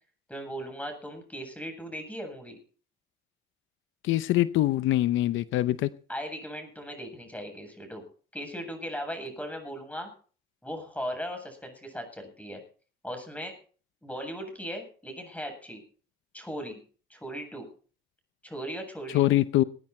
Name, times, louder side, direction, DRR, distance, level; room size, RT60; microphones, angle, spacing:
voice 1, 0.3-2.6 6.1-8.0 8.3-10.1 10.6-12.6 13.0-13.6 14.0-15.8 16.3-16.8 17.1-17.7 18.4-19.4, equal, 5° left, 8.0 m, -38 dB
voice 2, 4.0-5.9 19.1-19.6, left 15 dB, 90° left, 0.7 m, -23 dB
20.0 x 11.0 x 4.4 m
cardioid pair, 90°, 20 cm